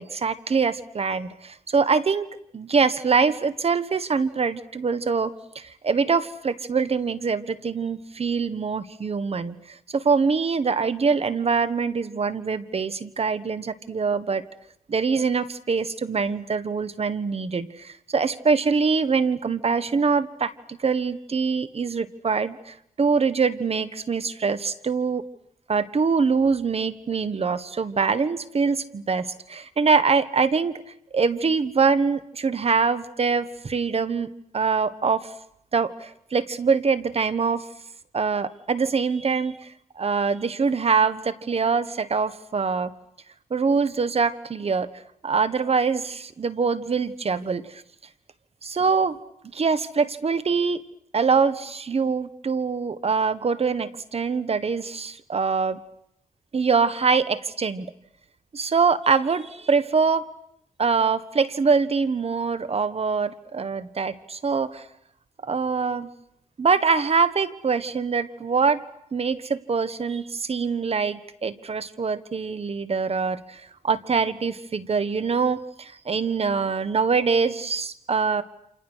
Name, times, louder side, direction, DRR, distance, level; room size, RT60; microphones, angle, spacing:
voice 1, 0.0-2.3 2.5-14.4 14.9-25.2 25.7-30.8 31.1-34.3 34.5-35.3 35.7-37.7 38.1-39.7 40.0-42.9 43.5-44.9 45.2-47.8 48.6-49.2 49.5-50.8 51.1-55.8 56.5-57.9 58.5-60.2 60.8-64.8 65.4-66.1 66.6-68.8 69.1-78.4, right 5 dB, 50° right, 14 dB, 1.5 m, -24 dB
29.0 x 27.5 x 6.5 m, 0.74 s
cardioid pair, 70°, 13 cm